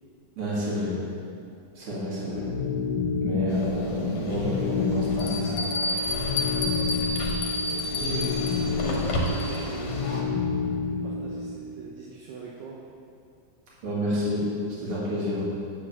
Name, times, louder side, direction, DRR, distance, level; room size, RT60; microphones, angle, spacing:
voice 1, 0.4-1.0 1.7-2.5 3.2-5.6 13.8-14.5 14.8-15.4, left 1 dB, 50° right, -7 dB, 2.7 m, -29 dB
sound 1, 2.3-11.5, left 4 dB, 55° left, 1.6 m, -29 dB
sound 2, 3.5-10.2, left 1 dB, 70° left, 2.6 m, -35 dB
Bell, 3.6-3.7 4.3-4.4 5.2-9.8, left 2 dB, 90° left, 2.5 m, -31 dB
voice 2, 7.6-10.0 10.9-12.8, right 4 dB, 75° right, -4 dB, 2.2 m, -40 dB
9.7 x 3.9 x 7.0 m, 2.5 s
omnidirectional pair, 3.6 m